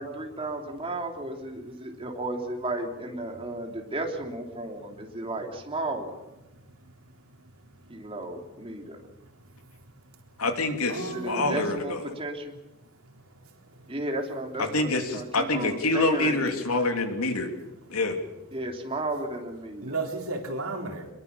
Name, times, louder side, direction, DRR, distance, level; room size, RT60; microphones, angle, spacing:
voice 1, 0.0-6.2 7.9-9.0 11.1-12.6 13.9-16.6 18.5-20.0, right 2 dB, 25° right, 2 dB, 3.2 m, -34 dB
voice 2, 10.4-12.0 14.6-17.5 17.9-18.2, left 2 dB, 80° left, 6 dB, 3.0 m, -26 dB
voice 3, 10.9-11.6 19.8-21.1, right 3 dB, 75° right, 2 dB, 3.9 m, -33 dB
25.0 x 22.0 x 7.0 m, 0.98 s
head